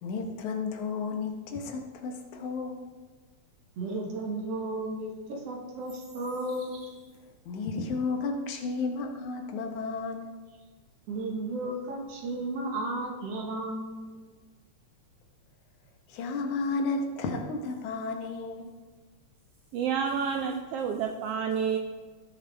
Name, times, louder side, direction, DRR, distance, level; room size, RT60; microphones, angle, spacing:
voice 1, 0.0-2.8 7.5-10.3 16.1-18.7, left 4 dB, 80° left, 4 dB, 2.5 m, -32 dB
voice 2, 3.8-7.0 11.1-14.3, right 2 dB, 60° right, 1 dB, 2.3 m, -34 dB
voice 3, 19.7-21.8, right 7 dB, 80° right, 4 dB, 1.4 m, -29 dB
16.0 x 6.6 x 3.4 m, 1.4 s
omnidirectional pair, 3.3 m